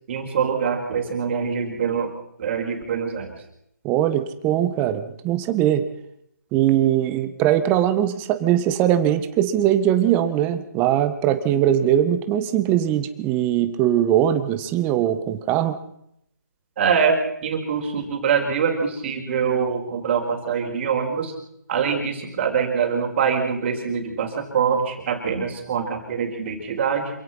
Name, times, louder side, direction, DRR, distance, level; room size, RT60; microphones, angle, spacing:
voice 1, 0.1-2.1 2.4-3.3 16.8-21.3 21.7-27.1, right 6 dB, 40° right, 2 dB, 4.8 m, -24 dB
voice 2, 3.8-5.8 6.5-15.8, right 11 dB, 20° right, 10 dB, 1.6 m, -21 dB
27.0 x 17.0 x 5.7 m, 0.76 s
figure-of-eight pair, 150°, 10 cm